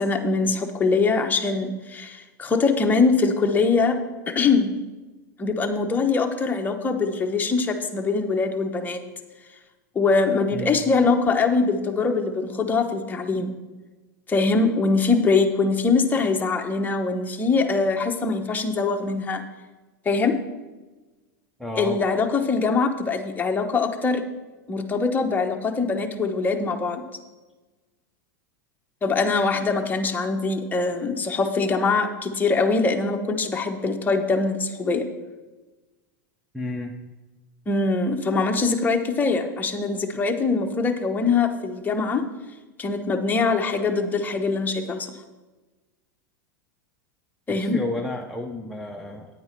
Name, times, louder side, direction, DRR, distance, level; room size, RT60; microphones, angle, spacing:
voice 1, 0.0-4.0 4.3-4.7 5.4-9.0 9.9-13.5 14.3-19.4 20.1-20.4 21.8-24.2 24.7-27.0 29.0-35.0 37.7-42.2 42.8-45.1 47.5-47.8, left 4 dB, 15° left, 4 dB, 1.0 m, -23 dB
voice 2, 10.5-10.8 21.6-22.0 36.5-36.9 47.5-49.4, left 2 dB, ahead, 0 dB, 0.6 m, -32 dB
9.7 x 8.7 x 4.5 m, 1.2 s
supercardioid pair, 125°, 10 cm